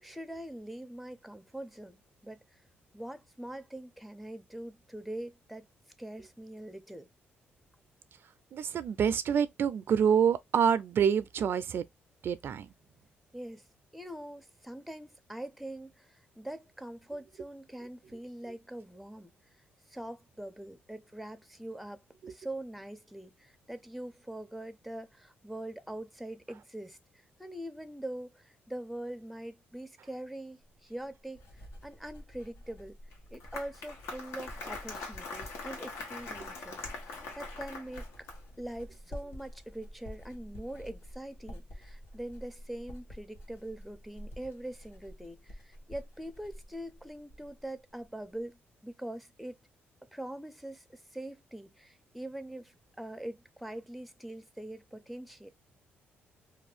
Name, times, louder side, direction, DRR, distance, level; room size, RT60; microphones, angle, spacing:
voice 1, 0.0-2.6 2.9-5.7 6.0-7.1 13.3-13.7 13.9-19.3 19.9-27.0 27.4-33.0 33.3-38.3 38.6-49.6 50.1-55.5, right 1 dB, ahead, 0.5 m, -43 dB
voice 2, 8.5-11.9 12.2-12.7 22.2-22.3, right 7 dB, 60° right, 0.3 m, -27 dB
Writing, 30.6-47.7 48.0-48.4, equal, 65° left, 1.1 m, -49 dB
Applause, 33.1-38.6, left 3 dB, 85° left, 1.0 m, -42 dB
2.6 x 2.2 x 3.3 m
cardioid pair, 90°, 4 cm